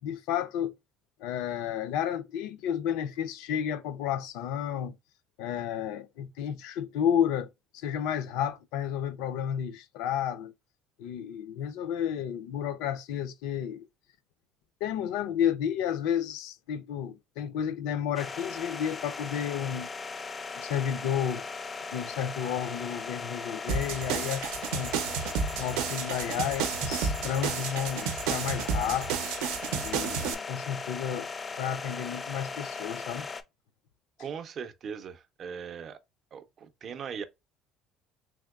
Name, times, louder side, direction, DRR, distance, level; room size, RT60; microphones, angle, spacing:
voice 1, 0.0-0.7 1.2-5.0 5.4-7.5 7.7-10.5 11.0-13.8 14.8-19.9 20.6-21.4 21.9-24.9 25.6-29.2 29.8-31.3 31.6-33.3, left 9 dB, 85° left, 0.5 m, -31 dB
sound 1, 18.1-33.4, left 4 dB, 20° left, 0.4 m, -38 dB
sound 2, 23.7-30.3, right 7 dB, 90° right, 0.6 m, -31 dB
voice 2, 34.2-36.0 36.3-37.2, right 7 dB, 40° right, 0.5 m, -39 dB
3.5 x 2.8 x 2.3 m
cardioid pair, 140°, 0 cm